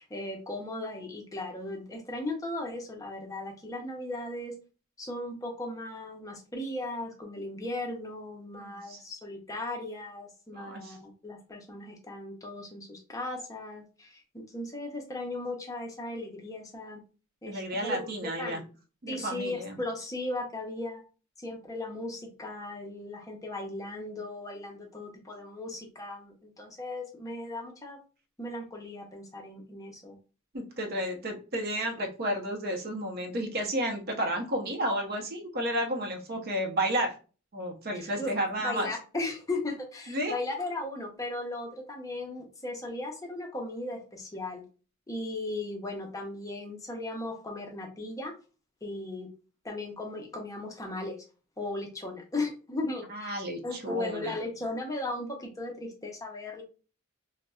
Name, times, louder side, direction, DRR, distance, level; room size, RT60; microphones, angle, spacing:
voice 1, 0.0-4.5 5.0-17.0 17.4-18.6 19.1-21.0 21.4-28.0 28.4-30.2 31.0-31.2 37.9-38.3 38.6-44.6 45.1-48.3 48.8-49.3 49.6-51.2 51.6-53.4 53.6-56.6, left 2 dB, 15° left, 1 dB, 0.5 m, -37 dB
voice 2, 8.5-9.0 10.5-11.0 17.5-18.6 19.0-19.8 30.5-37.2 37.5-38.9 40.1-40.4 53.1-54.4, right 1 dB, 45° right, 3 dB, 0.6 m, -32 dB
3.9 x 2.0 x 2.2 m, 0.35 s
head